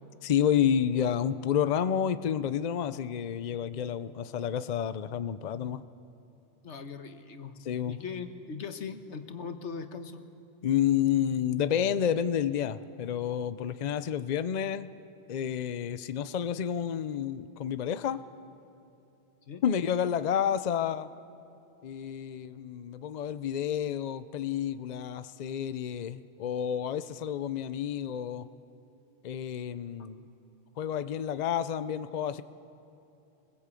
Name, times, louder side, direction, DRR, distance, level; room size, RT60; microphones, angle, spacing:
voice 1, 0.2-5.8 7.6-8.0 10.6-14.9 15.3-18.2 19.6-21.1 21.8-28.5 29.2-30.3 30.8-32.4, left 9 dB, 45° left, 13 dB, 0.6 m, -30 dB
voice 2, 6.6-7.6 7.9-10.2 19.5-19.6, left 5 dB, 90° left, 8 dB, 1.5 m, -40 dB
21.0 x 20.0 x 8.4 m, 2.9 s
omnidirectional pair, 1.1 m